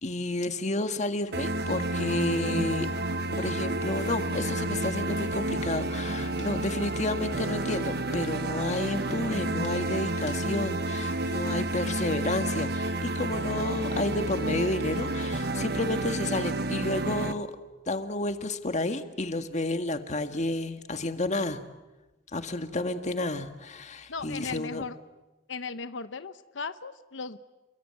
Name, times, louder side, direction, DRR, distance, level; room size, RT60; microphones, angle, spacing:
voice 1, 0.0-2.9 3.4-17.5 17.9-21.6 22.3-24.8, left 2 dB, 40° left, 8 dB, 1.7 m, -31 dB
Burping eructation, 1.3-11.9, left 3 dB, 70° left, 2.6 m, -49 dB
sound 1, 1.3-17.3, right 2 dB, 60° right, 1.3 m, -30 dB
voice 2, 24.1-25.0 25.5-27.4, left 4 dB, 90° left, 12 dB, 0.9 m, -37 dB
29.5 x 22.0 x 9.1 m, 1.1 s
head